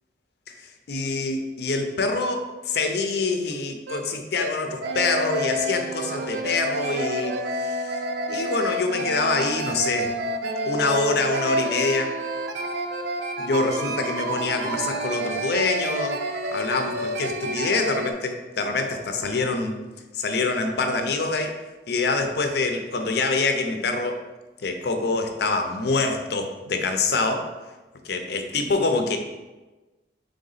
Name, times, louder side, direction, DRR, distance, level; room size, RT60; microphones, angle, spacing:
voice 1, 0.9-8.0 8.3-10.1 10.6-12.2 13.4-16.2 16.5-19.8 20.1-21.6 21.9-24.2 24.6-27.4 28.0-29.2, left 3 dB, 65° left, 6 dB, 0.5 m, -25 dB
sound 1, 3.5-3.6 3.9-4.0 4.4-4.5 4.8-18.1, right 1 dB, 70° right, 0.4 m, -29 dB
3.9 x 3.4 x 3.9 m, 1.2 s
head